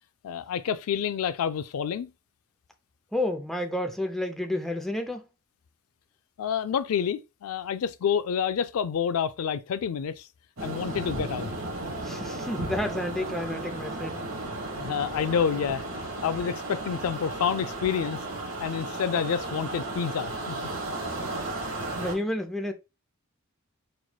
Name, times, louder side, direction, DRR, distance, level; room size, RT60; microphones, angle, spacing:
voice 1, 0.2-2.1 6.4-10.2 10.6-11.5 14.8-15.8 16.2-18.2 18.6-20.6, left 7 dB, 85° left, 0.3 m, -28 dB
voice 2, 3.1-5.3 12.0-14.2 22.0-22.7, left 1 dB, ahead, 0.5 m, -30 dB
sound 1, 10.6-22.1, right 2 dB, 70° right, 1.6 m, -34 dB
4.4 x 3.1 x 2.2 m
head